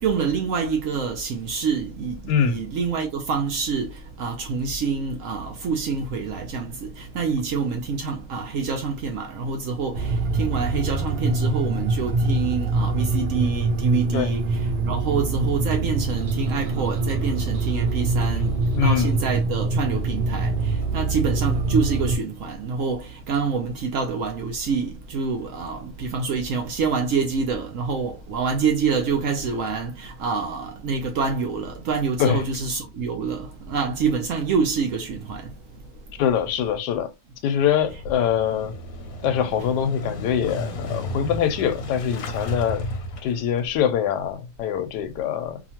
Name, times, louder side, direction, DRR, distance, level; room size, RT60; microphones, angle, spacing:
voice 1, 0.0-3.9 4.2-18.5 18.8-35.5, right 5 dB, 65° right, 0.8 m, -26 dB
voice 2, 2.3-2.6 14.1-14.3 18.7-19.1 32.2-32.4 36.2-37.1 37.4-38.7 39.2-42.9 43.2-45.6, left 8 dB, 85° left, 1.2 m, -23 dB
sound 1, 9.9-22.2, right 3 dB, 90° right, 0.4 m, -24 dB
Motorcycle / Engine starting, 37.8-43.7, left 1 dB, 65° left, 1.0 m, -33 dB
2.8 x 2.5 x 2.8 m
omnidirectional pair, 1.8 m